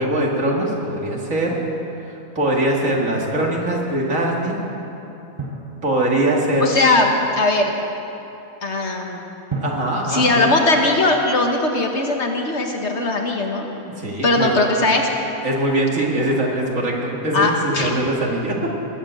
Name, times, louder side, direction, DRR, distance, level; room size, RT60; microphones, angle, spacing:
voice 1, 0.0-1.6 2.1-4.6 5.8-6.7 9.6-10.5 14.0-14.6 15.4-18.8, right 1 dB, 60° right, -2 dB, 2.4 m, -22 dB
Drum, 5.4-6.9 9.5-11.7, right 3 dB, 25° right, 0.9 m, -34 dB
voice 2, 6.6-7.7 8.6-9.2 10.1-13.6 14.2-15.1 17.3-17.9, left 2 dB, 50° left, 2 dB, 1.4 m, -19 dB
20.0 x 7.7 x 7.6 m, 3.0 s
omnidirectional pair, 1.5 m